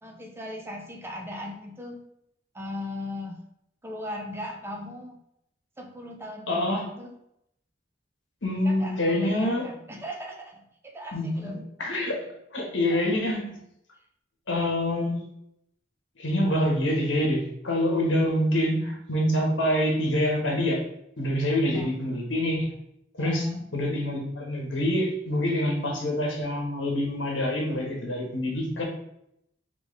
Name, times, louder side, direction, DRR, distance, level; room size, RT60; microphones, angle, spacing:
voice 1, 0.0-2.0 2.5-3.4 3.8-5.2 5.8-7.1 8.6-11.6 12.9-13.0 21.7-21.9 23.2-23.7, left 1 dB, 15° right, 1 dB, 0.6 m, -38 dB
voice 2, 6.5-6.8 8.4-9.7 11.1-13.6 14.5-15.2 16.2-20.8 21.2-22.7 23.1-23.5 23.7-28.8, left 1 dB, 85° left, -1 dB, 1.4 m, -26 dB
5.0 x 3.1 x 3.3 m, 0.77 s
head